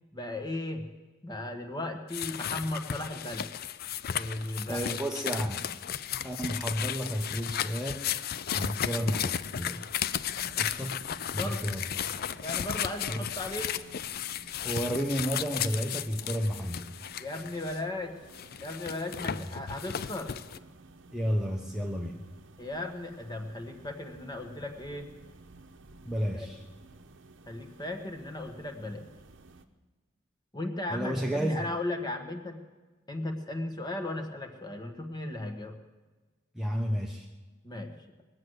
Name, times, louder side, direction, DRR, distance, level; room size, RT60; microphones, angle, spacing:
voice 1, 0.1-0.8 1.2-3.5 4.1-5.0 11.3-11.8 12.4-13.8 17.2-18.2 18.6-20.3 22.6-25.1 26.3-26.5 27.5-29.0 30.5-32.6 33.1-35.8 37.6-37.9, left 1 dB, 20° left, 5 dB, 1.3 m, -36 dB
sound 1, 2.1-17.8 18.3-20.6, left 9 dB, 50° left, 0.4 m, -35 dB
voice 2, 4.7-5.6 6.2-8.1 8.5-9.8 10.6-11.0 11.3-11.8 13.1-13.2 14.6-16.9 19.3-19.5 21.1-22.2 26.1-26.6 30.9-31.6 36.5-37.3, equal, ahead, 0 dB, 0.8 m, -31 dB
sound 2, 9.8-29.7, right 2 dB, 65° right, 0.9 m, -54 dB
20.5 x 7.8 x 8.0 m, 1.3 s
head